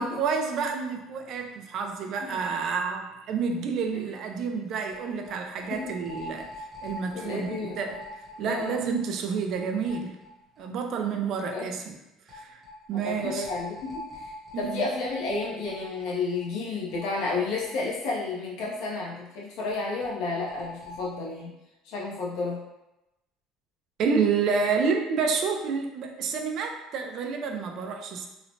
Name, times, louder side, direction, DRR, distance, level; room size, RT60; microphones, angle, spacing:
voice 1, 0.0-6.5 6.8-8.0 8.4-10.2 10.6-11.9 12.3-12.6 12.9-13.5 14.5-14.9 24.0-28.3, right 5 dB, 50° right, 3 dB, 0.3 m, -29 dB
sound 1, 3.6-3.7 3.9-4.0 4.9-10.7 10.9-11.0 12.3-18.4 18.7-18.8 19.7-21.2, left 2 dB, 5° left, 0.7 m, -44 dB
voice 2, 7.1-7.8 8.4-8.8 11.5-11.7 13.0-21.5 21.8-22.6, left 3 dB, 65° left, -5 dB, 0.6 m, -31 dB
3.0 x 2.0 x 2.6 m, 0.94 s
cardioid pair, 150°, 0 cm